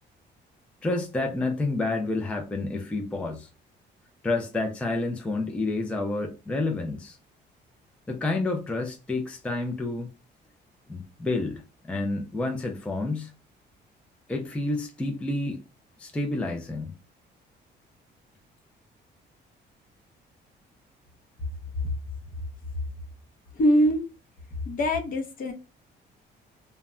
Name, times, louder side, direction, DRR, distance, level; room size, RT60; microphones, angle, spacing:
voice 1, 0.8-3.5 4.2-7.2 8.1-10.1 10.9-11.6 11.9-13.3 14.3-15.6 16.0-16.9, left 2 dB, 5° left, 0.3 m, -29 dB
voice 2, 23.5-24.0 24.7-25.5, equal, 50° left, 0.7 m, -23 dB
2.1 x 2.1 x 3.5 m
cardioid pair, 145°, 18 cm